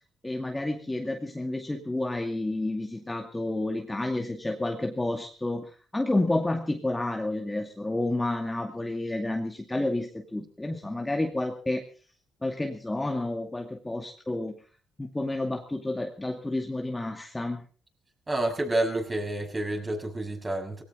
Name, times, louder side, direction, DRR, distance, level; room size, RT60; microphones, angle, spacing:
voice 1, 0.2-11.9 12.4-14.6 15.0-17.6, left 2 dB, 15° left, 2 dB, 2.3 m, -30 dB
voice 2, 18.3-20.8, right 1 dB, 20° right, 4 dB, 6.4 m, -29 dB
19.5 x 17.5 x 4.1 m, 0.40 s
cardioid pair, 90°, 0 cm